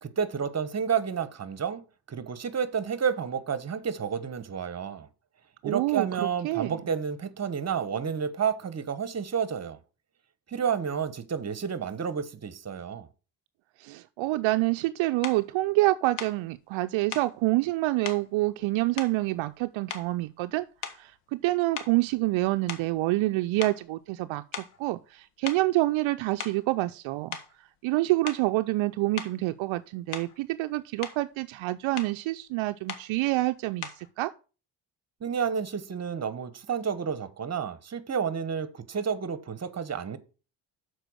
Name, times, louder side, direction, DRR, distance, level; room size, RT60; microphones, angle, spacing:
voice 1, 0.0-1.8 2.1-5.1 5.6-9.8 10.5-13.1 35.2-40.2, right 7 dB, 30° right, 1.1 m, -30 dB
voice 2, 5.6-6.8 13.8-20.7 20.9-24.4 24.8-27.4 27.8-34.3, right 19 dB, 70° right, 0.5 m, -27 dB
sound 1, 15.2-15.4 16.2-16.4 17.1-17.3 18.0-18.3 19.0-19.6 19.9-20.3 20.8-21.2 21.7-23.3 23.6-23.8 24.5-24.8 25.5-25.7 26.2-26.7 27.3-27.5 28.3-28.5 29.2-29.4 30.1-30.4 30.8-31.2 32.0-32.2 32.9-33.1 33.8-34.1, left 8 dB, 80° left, 1.3 m, -39 dB
6.7 x 4.6 x 6.2 m
supercardioid pair, 65°, 49 cm